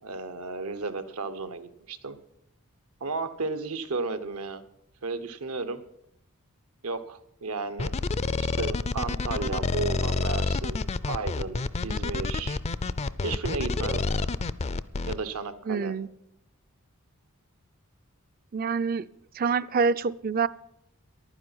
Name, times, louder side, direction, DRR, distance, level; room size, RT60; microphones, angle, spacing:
voice 1, 0.0-2.2 3.0-4.6 5.0-5.8 6.8-7.9 8.4-12.6 13.2-14.0 15.1-15.9, right 4 dB, 80° right, 1.0 m, -33 dB
sound 1, 7.8-15.2, left 3 dB, 30° left, 0.4 m, -28 dB
voice 2, 15.7-16.1 18.5-19.1 19.4-20.5, right 5 dB, 40° right, 0.4 m, -26 dB
11.0 x 9.9 x 7.9 m
head